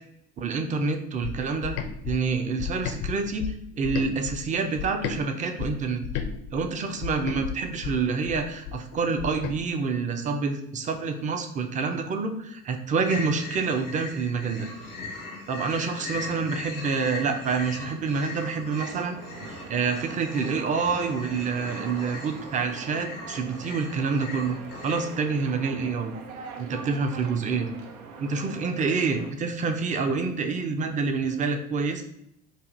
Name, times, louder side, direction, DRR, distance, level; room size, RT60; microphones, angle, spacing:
voice 1, 0.4-1.8 2.0-3.5 3.8-6.0 6.5-14.7 15.5-19.2 19.5-24.6 24.8-26.1 26.6-27.8 28.2-32.0, right 4 dB, 20° right, 6 dB, 0.4 m, -27 dB
sound 1, 1.2-5.2 5.6-9.6, left 8 dB, 50° left, 0.5 m, -34 dB
sound 2, 13.0-25.0, left 3 dB, 90° left, 0.8 m, -40 dB
sound 3, 18.8-29.3, right 5 dB, 85° right, 0.5 m, -43 dB
4.8 x 2.4 x 2.5 m, 0.76 s
figure-of-eight pair, 60°, 42 cm